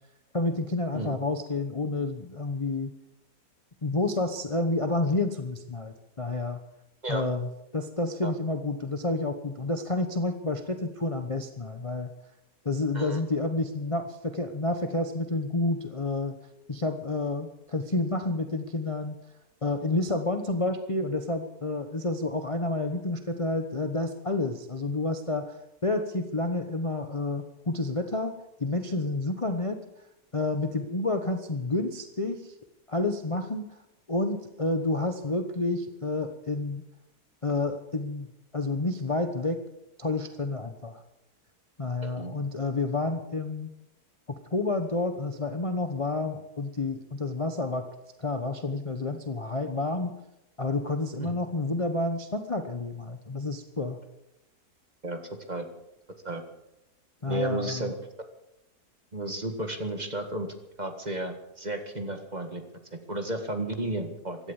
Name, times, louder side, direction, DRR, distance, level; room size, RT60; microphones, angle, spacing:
voice 1, 0.3-2.9 3.8-6.6 7.1-12.1 12.6-16.4 16.7-19.2 19.6-29.8 30.3-32.5 32.9-33.8 34.1-36.8 37.4-39.6 40.0-41.0 41.8-43.7 44.3-47.8 48.2-50.2 50.6-54.0 57.2-57.9, left 2 dB, 25° left, 6 dB, 1.0 m, -29 dB
voice 2, 42.0-42.3 51.2-51.3 55.0-55.2 55.5-55.7 56.2-56.4 57.3-58.0 59.1-60.5 60.8-62.6 62.9-64.4, right 1 dB, 25° right, 6 dB, 1.8 m, -33 dB
16.0 x 12.5 x 7.1 m, 0.90 s
omnidirectional pair, 1.7 m